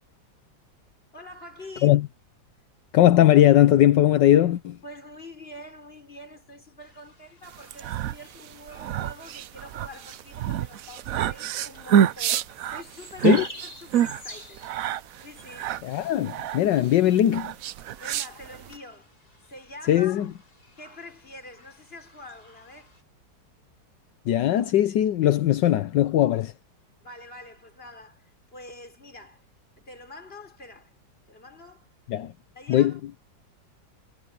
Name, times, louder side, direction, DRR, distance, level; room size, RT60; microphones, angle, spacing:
voice 1, 1.1-2.0 4.8-12.4 12.7-14.6 15.2-15.8 18.0-19.1 19.5-20.3 20.8-22.9 27.0-29.4 29.8-30.9 31.3-31.9 32.5-33.0, left 1 dB, 30° left, 4.7 m, -45 dB
voice 2, 2.9-4.8 13.2-13.4 15.8-17.5 19.9-20.3 24.3-26.5 32.1-32.3 32.7-32.9, left 12 dB, 75° left, 1.5 m, -19 dB
sound 1, 6.8-23.0, left 1 dB, 55° left, 8.3 m, -50 dB
sound 2, 7.6-18.8, right 9 dB, 65° right, 0.9 m, -27 dB
omnidirectional pair, 1.9 m